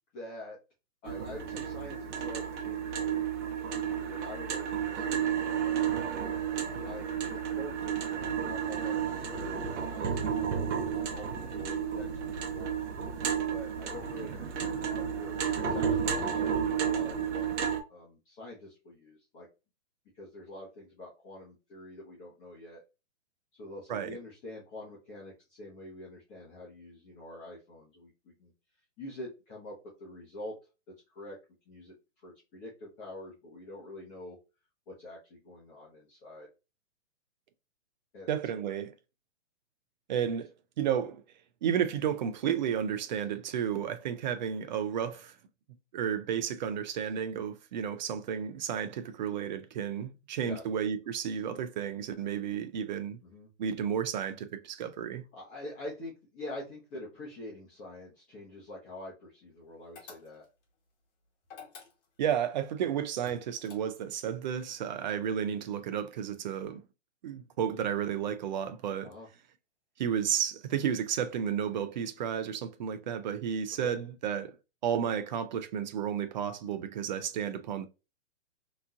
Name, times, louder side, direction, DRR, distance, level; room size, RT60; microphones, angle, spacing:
voice 1, 0.1-0.6 1.0-6.3 6.8-12.7 13.5-19.5 20.1-22.8 23.5-28.5 29.0-30.5 31.1-31.4 31.7-34.4 34.9-36.5 38.1-38.3 50.4-50.6 53.2-53.5 55.3-60.5 69.0-69.3 73.8-73.9, left 1 dB, 20° left, 1.1 m, -46 dB
sound 1, 1.1-17.8, right 7 dB, 70° right, 0.9 m, -32 dB
voice 2, 38.3-38.9 40.1-40.5 40.8-41.2 41.6-45.4 45.9-53.2 53.6-55.2 62.2-66.8 67.2-69.1 70.0-74.5 74.8-77.9, right 8 dB, 40° right, 0.5 m, -32 dB
sound 2, 60.0-60.6 61.4-62.3 63.2-64.2, left 6 dB, 45° left, 1.3 m, -50 dB
3.5 x 3.1 x 2.4 m
hypercardioid pair, 145°, 37 cm